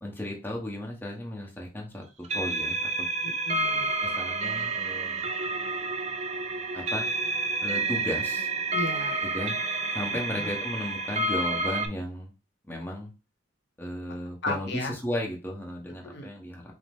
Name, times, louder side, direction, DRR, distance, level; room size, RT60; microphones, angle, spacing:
voice 1, 0.0-2.0 2.3-3.1 4.0-5.3 6.7-7.1 7.6-8.5 9.3-9.6 9.9-12.3 12.7-13.1 13.8-16.6, left 1 dB, 10° left, -1 dB, 0.9 m, -35 dB
sound 1, 2.2-11.9, right 3 dB, 35° right, 0.6 m, -29 dB
voice 2, 3.2-3.9 8.7-9.2 10.3-10.5 14.4-14.9 16.1-16.3, left 2 dB, 60° left, 3 dB, 0.9 m, -34 dB
5.5 x 2.0 x 3.5 m, 0.29 s
head